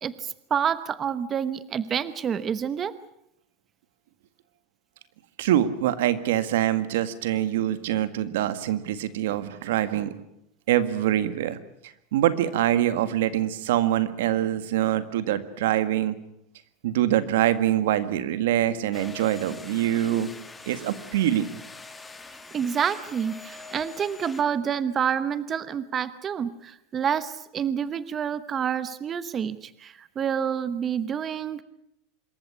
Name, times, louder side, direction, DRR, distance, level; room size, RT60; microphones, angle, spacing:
voice 1, 0.0-2.9 22.5-31.6, right 8 dB, 30° right, 15 dB, 1.0 m, -28 dB
voice 2, 5.4-10.1 10.7-16.2 16.8-20.3 20.7-21.5, right 12 dB, 80° right, 13 dB, 1.8 m, -24 dB
sound 1, 18.9-24.4, left 3 dB, 10° left, 2.2 m, -44 dB
26.0 x 14.0 x 9.7 m, 0.78 s
supercardioid pair, 130°, 0 cm